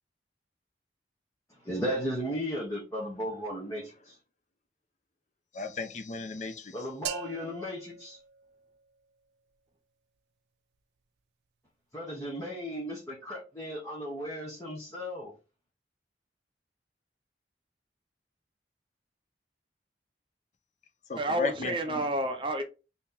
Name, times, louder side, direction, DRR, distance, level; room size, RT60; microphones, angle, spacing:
voice 1, 1.5-4.2 6.7-8.2 11.9-15.3, equal, 15° left, 0.9 m, -35 dB
voice 2, 5.5-6.8 21.1-22.0, left 4 dB, 40° left, 0.5 m, -35 dB
sound 1, 7.0-9.0, right 8 dB, 75° right, 0.4 m, -41 dB
voice 3, 21.2-22.6, right 1 dB, 30° right, 0.6 m, -30 dB
2.9 x 2.8 x 3.6 m
head